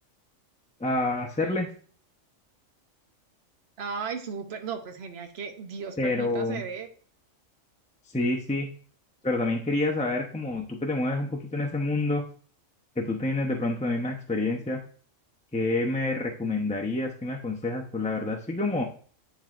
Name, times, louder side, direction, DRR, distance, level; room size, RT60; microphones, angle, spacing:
voice 1, 0.8-1.7 6.0-6.6 8.1-8.7 9.2-12.2 13.0-14.8 15.5-18.8, left 2 dB, 10° left, 0 dB, 0.5 m, -28 dB
voice 2, 3.8-6.9, right 6 dB, 55° right, 6 dB, 1.0 m, -36 dB
10.5 x 4.0 x 2.5 m, 0.44 s
omnidirectional pair, 1.4 m